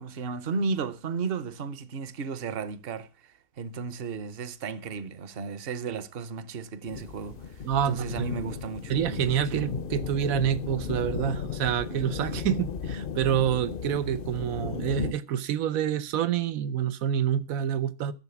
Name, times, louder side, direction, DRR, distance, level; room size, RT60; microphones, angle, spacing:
voice 1, 0.0-3.1 3.6-8.9 9.5-9.7, right 4 dB, 45° right, 1.0 m, -34 dB
sound 1, 6.9-15.1, left 6 dB, 50° left, 0.8 m, -35 dB
voice 2, 7.6-8.3 8.9-18.1, right 9 dB, 75° right, 1.3 m, -27 dB
13.5 x 7.3 x 7.0 m
omnidirectional pair, 1.5 m